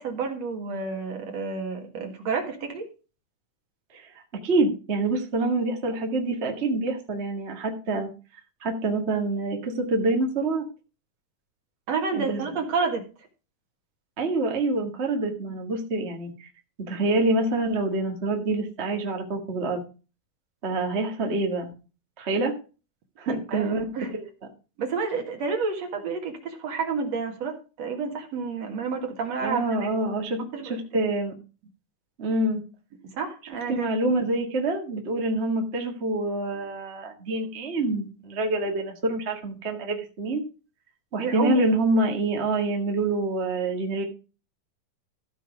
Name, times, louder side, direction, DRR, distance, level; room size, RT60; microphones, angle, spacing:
voice 1, 0.0-2.8 11.9-13.0 23.3-24.1 24.8-29.6 30.5-30.7 33.2-33.9 41.2-41.6, right 5 dB, 55° right, 2 dB, 2.6 m, -30 dB
voice 2, 4.4-8.1 8.6-10.6 12.1-12.4 14.2-16.5 16.9-19.8 20.6-21.7 22.2-22.5 23.2-23.9 24.1-24.3 29.4-31.3 32.2-32.6 33.7-40.4 41.1-44.0, right 2 dB, 30° right, 2 dB, 1.2 m, -26 dB
14.5 x 5.4 x 5.0 m, 0.33 s
omnidirectional pair, 4.1 m